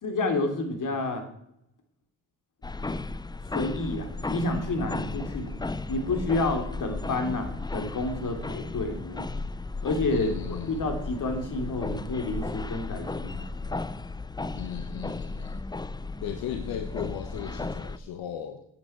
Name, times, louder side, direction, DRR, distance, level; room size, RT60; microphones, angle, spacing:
voice 1, 0.0-1.2 3.5-5.5 5.9-9.3 9.8-10.3 10.7-13.5, left 2 dB, 60° left, 6 dB, 3.2 m, -29 dB
sound 1, 2.6-18.0, left 3 dB, 10° left, 0.6 m, -35 dB
voice 2, 10.1-10.9 14.5-15.6 16.2-18.7, left 9 dB, 90° left, 8 dB, 1.2 m, -37 dB
9.2 x 8.4 x 9.4 m, 0.78 s
cardioid pair, 75°, 35 cm